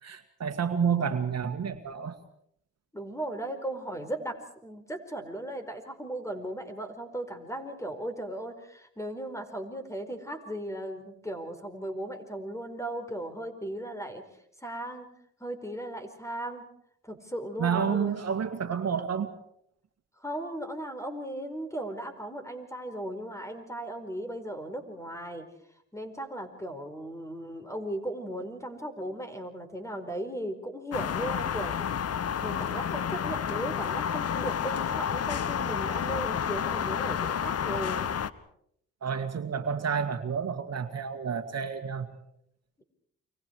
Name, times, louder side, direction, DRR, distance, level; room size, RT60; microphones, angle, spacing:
voice 1, 0.0-2.1 17.6-19.4 39.0-42.2, right 7 dB, 55° right, 7 dB, 2.0 m, -30 dB
voice 2, 2.9-14.2 14.6-15.1 15.4-16.7 17.0-18.1 20.2-25.4 25.9-31.8 32.4-38.1, right 1 dB, 10° left, 8 dB, 4.9 m, -37 dB
sound 1, 30.9-38.3, left 8 dB, 50° left, 1.1 m, -30 dB
29.5 x 25.0 x 4.8 m, 0.70 s
cardioid pair, 65°, 31 cm